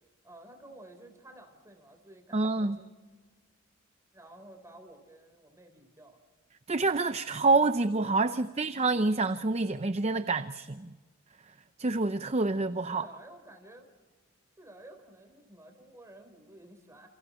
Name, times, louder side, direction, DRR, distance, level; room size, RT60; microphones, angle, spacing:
voice 1, 0.2-2.9 4.1-6.2 8.2-8.5 12.9-13.9 14.6-17.1, right 1 dB, 15° right, 4.1 m, -52 dB
voice 2, 2.3-2.8 6.7-10.9 11.8-13.1, right 3 dB, 30° right, 0.6 m, -27 dB
29.5 x 28.5 x 4.3 m
head